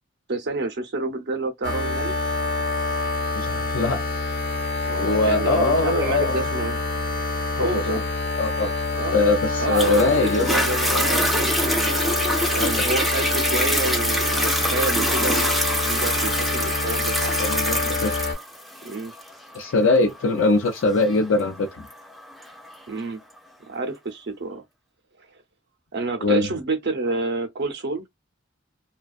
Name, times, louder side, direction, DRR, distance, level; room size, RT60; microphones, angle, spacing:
voice 1, 0.3-2.1 4.9-6.8 7.6-8.0 8.9-9.9 10.2-12.2 12.5-17.3 18.8-19.1 22.9-23.2 23.7-24.6 25.9-28.0, right 3 dB, 60° right, 0.6 m, -29 dB
sound 1, 1.6-18.3, left 3 dB, 55° left, 1.0 m, -26 dB
voice 2, 3.4-4.0 5.0-6.4 7.6-8.0 8.4-8.7 9.1-10.5 12.6-12.7 17.4-18.1 19.5-21.9 26.2-26.5, left 2 dB, 80° left, 0.4 m, -22 dB
Toilet flush, 9.7-22.8 23.4-23.5, equal, ahead, 0.4 m, -25 dB
2.4 x 2.2 x 2.3 m
head